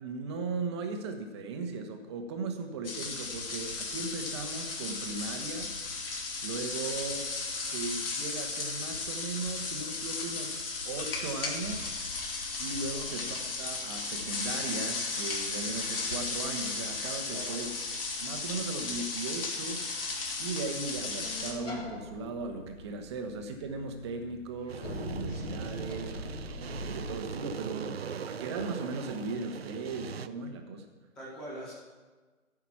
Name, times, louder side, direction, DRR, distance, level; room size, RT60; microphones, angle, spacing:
voice 1, 0.0-5.7 6.4-7.3 7.7-12.0 12.6-17.7 18.2-19.8 20.4-30.8, right 3 dB, 20° right, 5 dB, 1.0 m, -37 dB
sound 1, 2.8-21.5, left 3 dB, 45° left, 2.6 m, -35 dB
sound 2, 21.2-27.4, left 1 dB, 70° left, 4.0 m, -42 dB
sound 3, 24.7-30.3, right 7 dB, 50° right, 0.7 m, -40 dB
voice 2, 31.1-31.7, equal, ahead, -8 dB, 0.5 m, -42 dB
14.5 x 5.9 x 7.2 m, 1.3 s
figure-of-eight pair, 145°, 39 cm